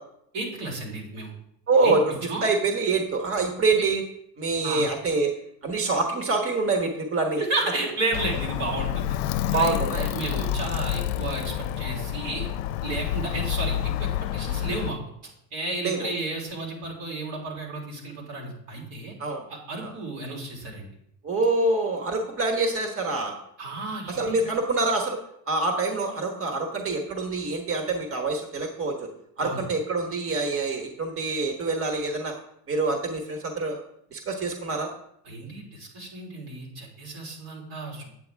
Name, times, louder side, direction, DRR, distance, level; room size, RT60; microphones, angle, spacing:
voice 1, 0.3-1.3 1.8-2.0 2.3-2.5 3.7-3.8 4.6-4.8 7.4-9.2 9.5-12.5 12.8-15.0 15.5-19.1 19.5-20.9 23.6-24.5 29.4-29.6 35.2-38.2, right 2 dB, 80° right, -3 dB, 3.5 m, -32 dB
voice 2, 1.7-2.0 2.4-4.0 4.4-5.3 5.6-7.4 9.5-10.1 15.8-16.1 19.2-19.4 19.8-19.9 21.2-23.3 24.1-25.2 25.5-28.9 29.4-32.3 32.7-33.8 34.1-34.9, right 3 dB, 30° right, 3 dB, 1.4 m, -25 dB
Alarm, 8.1-14.9, left 11 dB, 70° left, 0.6 m, -28 dB
8.8 x 7.7 x 3.5 m, 0.74 s
supercardioid pair, 85°, 47 cm